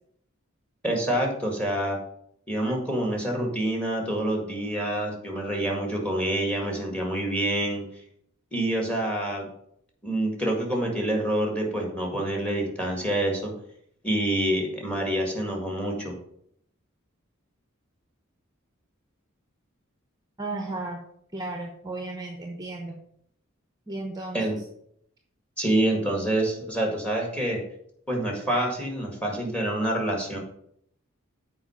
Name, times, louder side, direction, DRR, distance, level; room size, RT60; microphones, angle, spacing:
voice 1, 0.8-2.0 2.5-7.9 8.5-9.5 10.0-13.5 14.0-16.2 24.3-24.6 25.6-27.6 28.1-30.4, right 1 dB, 5° left, 1 dB, 1.9 m, -27 dB
voice 2, 20.4-21.0 21.3-23.0 23.9-24.4, right 2 dB, 20° right, 2 dB, 0.8 m, -34 dB
7.7 x 4.7 x 5.7 m, 0.71 s
head